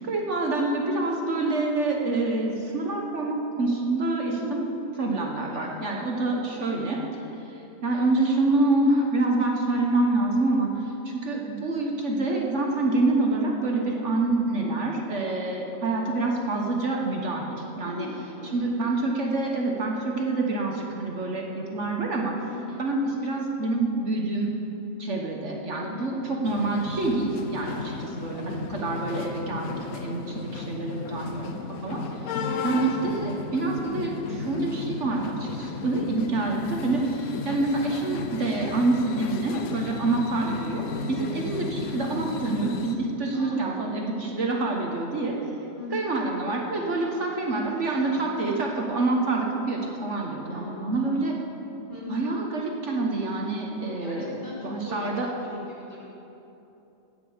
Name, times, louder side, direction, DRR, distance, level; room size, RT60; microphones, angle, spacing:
voice 1, 0.1-4.7 5.0-7.0 7.8-18.1 18.5-22.3 22.8-24.5 25.0-32.0 32.6-45.4 45.9-51.4 52.1-54.3 54.6-55.3, right 2 dB, 60° right, 0 dB, 1.5 m, -27 dB
voice 2, 4.2-4.6 5.4-5.7 6.3-6.6 17.8-18.6 18.9-19.1 22.5-22.8 25.8-26.1 27.7-27.9 28.8-29.1 32.3-32.6 40.0-40.2 43.3-43.8 45.8-46.1 46.8-47.3 47.5-48.3 50.5-51.2 51.9-52.3 53.8-55.1 55.4-56.0, left 3 dB, 35° left, -8 dB, 3.7 m, -40 dB
sound 1, 26.4-43.0, left 4 dB, 85° left, 1.2 m, -34 dB
17.0 x 6.1 x 7.2 m, 3.0 s
omnidirectional pair, 1.5 m